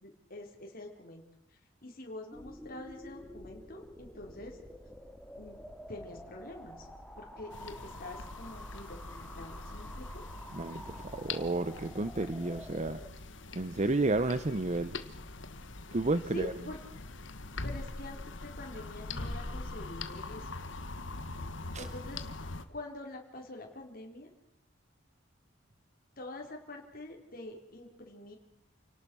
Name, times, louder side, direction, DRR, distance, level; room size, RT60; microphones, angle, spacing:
voice 1, 0.0-1.2 1.5-4.6 5.4-5.6 5.9-6.9 7.2-10.2 15.9-16.0 16.3-16.8 17.6-20.7 21.8-22.3 22.7-24.3 26.2-28.4, left 2 dB, 50° left, 1 dB, 4.2 m, -46 dB
sound 1, 2.3-13.1, equal, 5° left, 2.3 m, -49 dB
sound 2, 7.5-22.6, left 3 dB, 75° left, 1.5 m, -43 dB
voice 2, 10.5-13.0 13.5-15.0 15.9-16.5 21.7-21.9, right 2 dB, 35° right, 12 dB, 0.8 m, -31 dB
29.0 x 18.5 x 6.2 m, 0.76 s
head